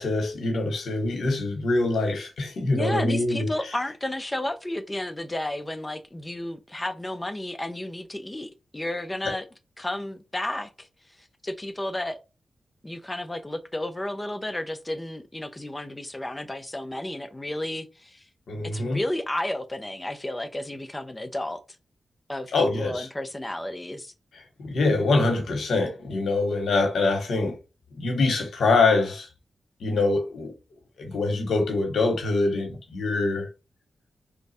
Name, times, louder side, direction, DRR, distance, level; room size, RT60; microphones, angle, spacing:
voice 1, 0.0-3.5 18.5-19.0 22.5-23.1 24.6-27.5 27.9-29.3 29.8-30.5 31.0-33.5, left 3 dB, 85° left, 1.1 m, -24 dB
voice 2, 2.7-9.4 9.8-10.9 11.2-12.2 12.8-18.2 18.7-21.6 22.3-24.1, left 1 dB, 20° left, 0.7 m, -32 dB
3.2 x 2.3 x 4.1 m
cardioid pair, 50°, 0 cm